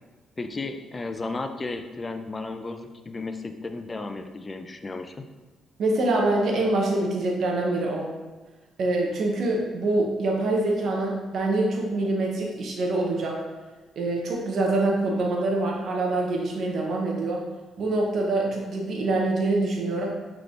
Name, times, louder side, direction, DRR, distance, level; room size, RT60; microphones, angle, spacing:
voice 1, 0.4-5.2, left 3 dB, 25° left, 6 dB, 0.4 m, -34 dB
voice 2, 5.8-8.1 8.8-13.4 14.0-17.4 17.8-20.1, right 2 dB, 65° right, -1 dB, 0.8 m, -25 dB
5.9 x 3.4 x 2.5 m, 1.3 s
cardioid pair, 90°, 0 cm